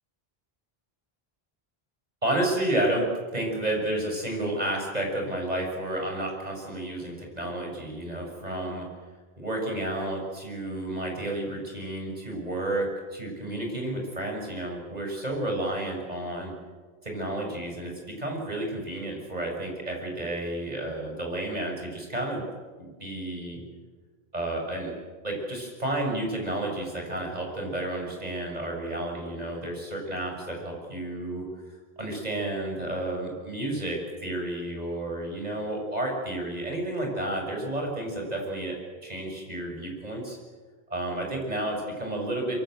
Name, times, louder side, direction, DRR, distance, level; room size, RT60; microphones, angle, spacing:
voice 1, 2.2-3.1 3.3-8.9 9.4-16.5 17.0-22.4 23.0-23.6 24.3-24.9 25.2-31.4 32.0-38.8 39.0-40.4 40.9-42.6, right 1 dB, 40° right, 1 dB, 6.8 m, -31 dB
24.5 x 23.5 x 7.9 m, 1.4 s
omnidirectional pair, 1.1 m